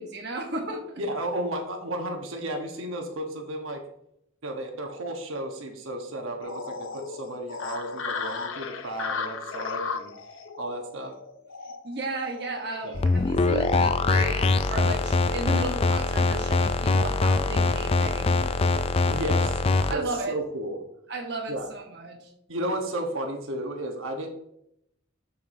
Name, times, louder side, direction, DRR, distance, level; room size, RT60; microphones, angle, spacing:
voice 1, 0.0-1.0 11.8-18.4 19.9-20.3 21.1-22.3, right 2 dB, 50° right, 1 dB, 1.0 m, -34 dB
voice 2, 1.0-3.8 4.4-10.1 10.6-11.1 12.8-13.0 19.1-20.8 21.5-21.7 22.5-24.3, right 1 dB, 85° right, 3 dB, 1.1 m, -33 dB
sound 1, 6.4-14.5, left 5 dB, 75° left, 0.7 m, -36 dB
sound 2, 12.9-19.9, left 3 dB, 30° left, 0.3 m, -23 dB
6.9 x 6.7 x 2.7 m, 0.75 s
head